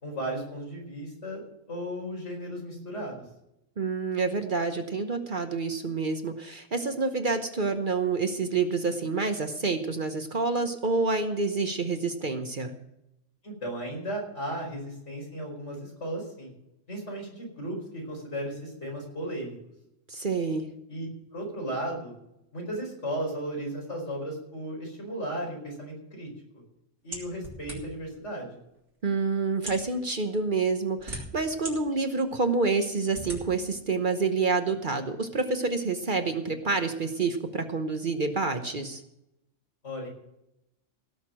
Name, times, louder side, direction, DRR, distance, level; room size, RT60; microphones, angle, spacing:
voice 1, 0.0-1.4 1.7-3.2 13.4-16.5 16.9-19.6 20.9-22.1 22.5-26.3 26.5-26.6 27.0-28.6 39.8-40.1, right 1 dB, 70° left, 0 dB, 5.1 m, -35 dB
voice 2, 3.8-12.7 20.1-20.7 29.0-39.0, right 4 dB, 45° right, 7 dB, 1.1 m, -28 dB
sound 1, 27.1-28.1 28.9-29.0 29.5-29.9 30.7-31.7 32.3-32.4 33.1-33.4, right 1 dB, 70° right, 3.7 m, -38 dB
17.0 x 6.6 x 7.6 m, 0.84 s
omnidirectional pair, 1.3 m